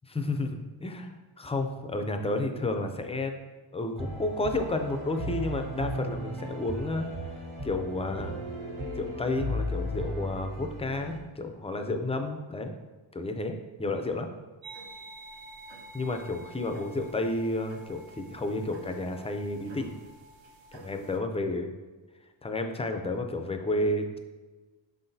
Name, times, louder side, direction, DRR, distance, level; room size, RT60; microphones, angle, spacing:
voice 1, 0.1-3.3 3.7-7.1 7.6-8.4 9.0-12.7 13.1-14.3 15.9-19.9 20.7-21.7 22.4-24.2, left 2 dB, 15° left, 5 dB, 0.4 m, -31 dB
sound 1, 4.0-11.2, equal, 80° right, 1.7 m, -36 dB
sound 2, 14.6-21.2, right 2 dB, 65° right, 0.8 m, -49 dB
6.6 x 5.8 x 2.7 m, 1.3 s
wide cardioid pair, 160°, 49 cm